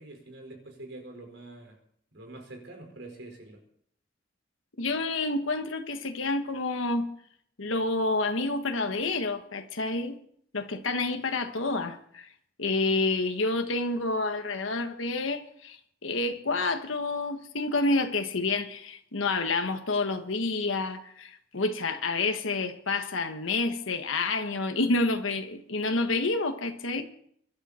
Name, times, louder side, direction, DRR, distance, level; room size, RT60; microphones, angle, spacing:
voice 1, 0.0-1.7 2.1-3.6, right 2 dB, 70° right, 4.9 m, -45 dB
voice 2, 4.8-7.1 7.6-10.2 10.5-12.3 12.6-15.8 16.0-27.0, left 3 dB, 90° left, 1.4 m, -29 dB
24.5 x 11.5 x 4.3 m
head